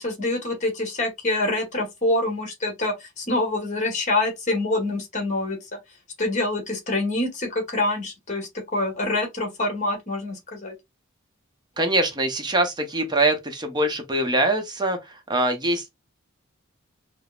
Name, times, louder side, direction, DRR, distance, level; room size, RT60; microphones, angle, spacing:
voice 1, 0.0-5.6 6.2-10.7, left 2 dB, 35° left, 1.3 m, -26 dB
voice 2, 11.8-15.9, right 2 dB, 20° right, 0.7 m, -23 dB
4.8 x 2.0 x 2.4 m
head